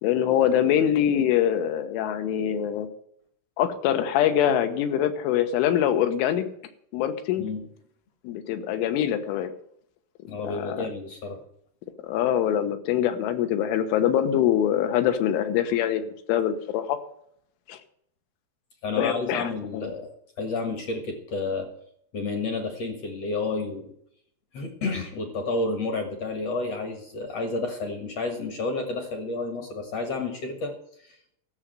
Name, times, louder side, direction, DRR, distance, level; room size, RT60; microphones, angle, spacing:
voice 1, 0.0-2.9 3.6-6.5 6.9-7.5 8.3-9.5 10.4-10.9 12.0-17.0 17.7-17.8 19.0-19.9, left 10 dB, 90° left, 8 dB, 3.7 m, -24 dB
voice 2, 10.3-11.4 18.8-21.7 22.1-23.9 24.5-30.7 31.0-31.2, left 3 dB, 60° left, 5 dB, 1.6 m, -30 dB
14.0 x 7.4 x 7.6 m, 0.69 s
omnidirectional pair, 5.4 m